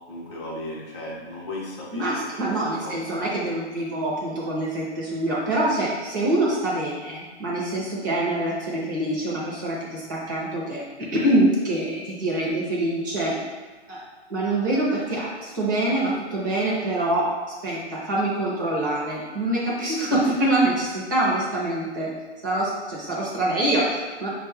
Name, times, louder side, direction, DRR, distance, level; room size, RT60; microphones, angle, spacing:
voice 1, 0.1-3.3, left 1 dB, 25° left, -3 dB, 0.8 m, -36 dB
voice 2, 1.9-13.4 13.9-14.0 14.3-17.3 17.6-22.1 22.4-24.3, right 1 dB, 15° right, -5 dB, 0.5 m, -25 dB
5.8 x 2.2 x 3.3 m, 1.3 s
hypercardioid pair, 155°, 35 cm